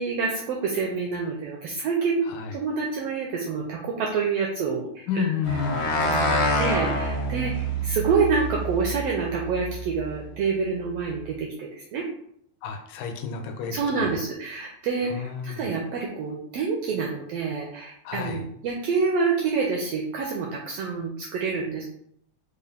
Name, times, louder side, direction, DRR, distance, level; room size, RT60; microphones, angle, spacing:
voice 1, 0.0-2.2 2.5-5.3 5.8-12.1 13.7-21.8, right 5 dB, 85° right, -1 dB, 1.4 m, -27 dB
voice 2, 2.3-2.6 5.1-5.9 12.6-14.2 15.0-15.7 18.0-18.5, left 7 dB, 85° left, 5 dB, 2.0 m, -31 dB
sound 1, 5.4-10.1, equal, 70° left, 1.6 m, -27 dB
5.0 x 2.3 x 3.4 m, 0.70 s
omnidirectional pair, 3.4 m